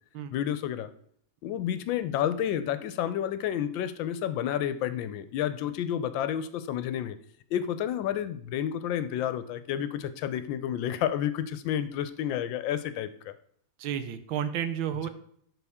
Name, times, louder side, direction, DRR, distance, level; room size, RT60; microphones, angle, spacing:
voice 1, 0.3-0.9 1.4-7.2 7.5-13.3, left 10 dB, 80° left, 12 dB, 1.3 m, -30 dB
voice 2, 13.8-15.1, right 9 dB, 90° right, 10 dB, 1.5 m, -31 dB
11.5 x 4.1 x 3.5 m, 0.64 s
omnidirectional pair, 2.1 m